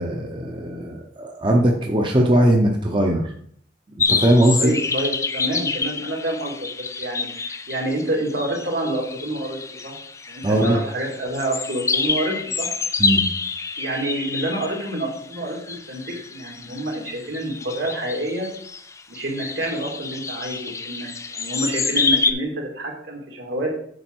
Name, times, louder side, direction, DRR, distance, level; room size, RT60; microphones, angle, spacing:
voice 1, 0.0-3.3 4.1-4.7 10.4-10.8 13.0-13.2, right 1 dB, 25° right, 1 dB, 0.7 m, -19 dB
sound 1, 4.0-22.3, left 4 dB, 15° left, 0.4 m, -27 dB
voice 2, 4.5-6.7 7.0-10.0 10.3-12.7 13.8-16.0 16.3-18.5 19.1-23.8, right 1 dB, 75° right, -1 dB, 2.3 m, -28 dB
7.7 x 5.0 x 4.5 m, 0.64 s
head